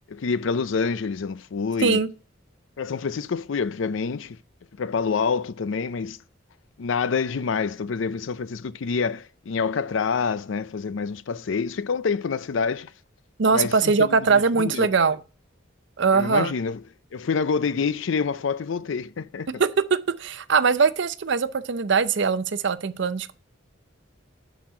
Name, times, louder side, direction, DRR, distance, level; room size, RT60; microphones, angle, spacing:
voice 1, 0.1-2.0 2.8-4.4 4.8-6.2 6.8-12.9 13.5-14.9 16.1-16.8 17.1-19.5, left 5 dB, 70° left, 0.5 m, -27 dB
voice 2, 13.4-15.2 16.0-16.5 19.6-23.3, right 5 dB, 60° right, 0.6 m, -21 dB
10.5 x 4.1 x 4.8 m
head